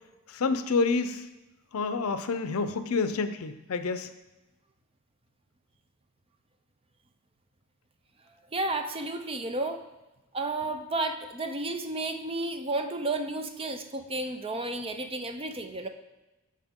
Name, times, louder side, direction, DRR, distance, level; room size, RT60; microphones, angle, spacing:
voice 1, 0.3-1.3 1.7-4.1, left 4 dB, 80° left, 10 dB, 0.6 m, -28 dB
voice 2, 8.5-9.8 10.3-15.9, right 2 dB, 25° right, 7 dB, 0.5 m, -32 dB
13.0 x 4.4 x 3.7 m, 1.1 s
head